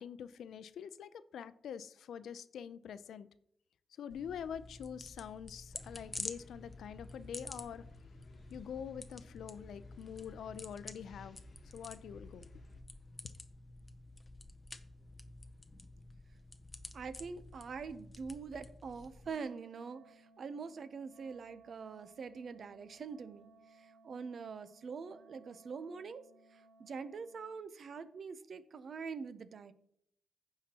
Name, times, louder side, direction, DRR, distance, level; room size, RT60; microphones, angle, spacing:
voice 1, 0.0-3.3 4.0-7.9 8.5-11.4 11.7-12.5, left 8 dB, 85° left, 0.5 m, -45 dB
sound 1, 4.1-19.3, left 2 dB, 15° left, 0.7 m, -50 dB
sound 2, 5.7-12.8, left 2 dB, 45° left, 1.2 m, -58 dB
voice 2, 16.9-26.2 26.5-29.7, right 5 dB, 50° right, 0.6 m, -44 dB
Wind instrument woodwind instrument, 19.2-27.6, right 3 dB, 75° right, 2.5 m, -63 dB
15.5 x 5.8 x 2.9 m
wide cardioid pair, 135°, 0 cm